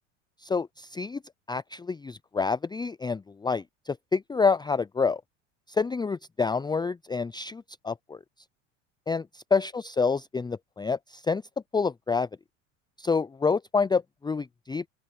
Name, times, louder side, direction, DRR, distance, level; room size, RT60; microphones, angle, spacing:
voice 1, 0.4-1.2 1.5-5.2 5.7-8.2 9.1-11.4 11.7-12.3 13.0-14.9, left 4 dB, 10° left, 0.6 m, -28 dB
open air
hypercardioid pair, 75°, 37 cm